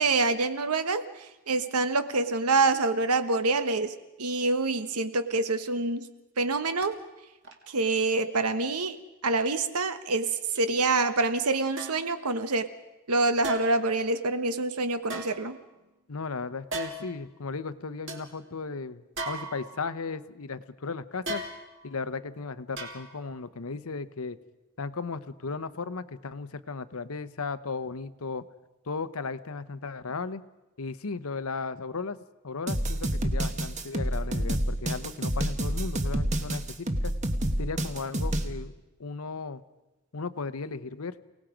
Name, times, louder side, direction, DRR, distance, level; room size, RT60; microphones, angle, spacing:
voice 1, 0.0-6.1 6.4-7.0 7.7-12.7 13.1-15.6, right 3 dB, 90° right, 10 dB, 1.2 m, -26 dB
sound 1, 6.8-6.9 7.4-7.7 8.5-8.6 9.5-9.6 10.6-10.7 11.8-12.1 13.4-13.9 15.0-15.9 16.7-17.2 17.7-17.8 18.1-18.3 19.2-20.0 21.3-21.9 22.8-23.3 23.7-23.8, right 2 dB, 55° right, 2.4 m, -37 dB
voice 2, 16.1-21.5 21.8-24.4 24.8-28.4 28.9-30.4 30.8-32.2 32.4-37.1 37.6-38.7 39.0-39.6 40.1-41.2, left 4 dB, 75° left, 13 dB, 0.9 m, -36 dB
sound 2, 32.7-38.5, right 1 dB, 30° right, 1.2 m, -28 dB
29.0 x 18.5 x 5.1 m, 1.0 s
head